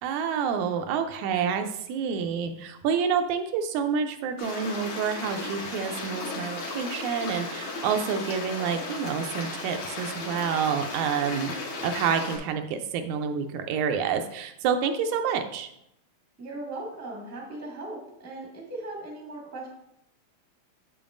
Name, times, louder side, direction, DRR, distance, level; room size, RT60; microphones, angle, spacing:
voice 1, 0.0-15.7, right 7 dB, 80° right, 7 dB, 1.9 m, -28 dB
Stream, 4.4-12.4, left 3 dB, 70° left, 2.5 m, -35 dB
voice 2, 16.4-19.7, right 2 dB, 10° right, -3 dB, 0.7 m, -38 dB
7.4 x 7.0 x 2.5 m, 0.79 s
omnidirectional pair, 3.4 m